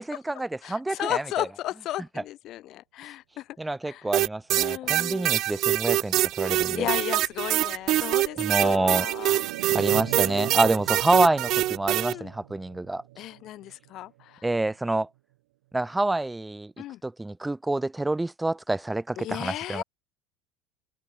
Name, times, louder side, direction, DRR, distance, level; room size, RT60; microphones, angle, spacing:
voice 1, 0.0-1.5 3.6-6.9 8.4-9.1 9.7-13.0 14.4-15.1 15.7-16.7 17.0-19.8, right 2 dB, 10° right, 1.9 m, -27 dB
voice 2, 0.6-3.5 3.8-4.1 4.5-5.3 6.4-9.4 9.9-10.6 12.0-12.3 13.2-14.5 16.8-17.0 19.2-19.8, left 14 dB, 50° left, 1.3 m, -35 dB
sound 1, 4.1-12.1, right 15 dB, 50° right, 0.7 m, -24 dB
sound 2, 5.3-14.8 15.2-15.3, right 19 dB, 65° right, 2.2 m, -43 dB
figure-of-eight pair, 75°, 0 cm